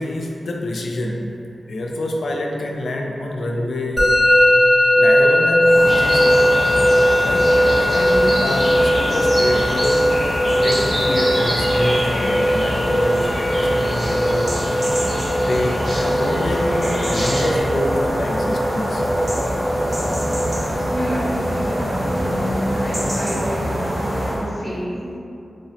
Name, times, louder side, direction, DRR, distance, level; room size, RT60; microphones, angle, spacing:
voice 1, 0.0-1.4 1.7-4.3 4.9-6.5 7.2-10.1 10.6-14.8 15.4-19.0, left 1 dB, 75° left, 0 dB, 0.4 m, -26 dB
Musical instrument, 4.0-22.9, equal, 15° left, 0.7 m, -19 dB
sound 1, 5.6-24.5, equal, 55° right, 0.7 m, -24 dB
sound 2, 5.9-17.6, equal, 85° right, 1.4 m, -29 dB
voice 2, 20.9-23.7 24.3-25.1, equal, 20° right, -8 dB, 1.0 m, -30 dB
4.7 x 2.0 x 2.6 m, 2.6 s
cardioid pair, 45°, 0 cm